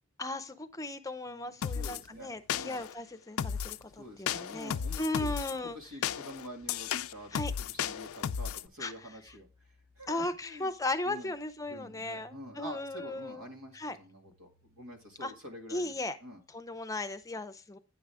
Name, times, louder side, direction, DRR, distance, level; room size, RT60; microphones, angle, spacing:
voice 1, 0.2-5.8 7.3-7.5 8.8-8.9 10.1-13.4 13.7-14.0 15.2-15.3 15.7-16.2 16.5-17.8, left 2 dB, 15° left, 9 dB, 0.6 m, -36 dB
voice 2, 1.2-2.8 4.0-5.3 5.6-9.5 10.0-10.7 11.1-11.3 11.7-15.9 16.2-16.4 17.3-17.4, equal, 80° right, 3 dB, 2.2 m, -47 dB
sound 1, 1.6-2.0 2.5-2.9 3.4-3.8 4.3-5.5 6.0-8.7, left 8 dB, 80° left, 0.4 m, -34 dB
sound 2, 5.8-17.2, left 1 dB, 55° right, 1.8 m, -67 dB
9.6 x 6.3 x 3.5 m, 0.33 s
head